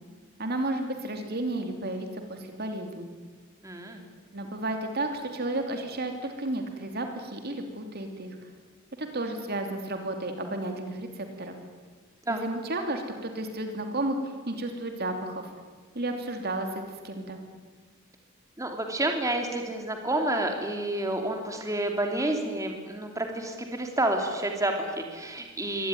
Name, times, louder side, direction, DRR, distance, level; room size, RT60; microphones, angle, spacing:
voice 1, 0.4-3.1 4.3-8.4 9.0-11.6 12.3-15.5 15.9-16.7 17.0-17.4, right 2 dB, 50° right, 5 dB, 2.8 m, -32 dB
voice 2, 3.6-4.0 12.3-12.4 18.6-25.9, right 1 dB, 15° right, 3 dB, 2.9 m, -29 dB
24.0 x 18.5 x 9.9 m, 1.5 s
head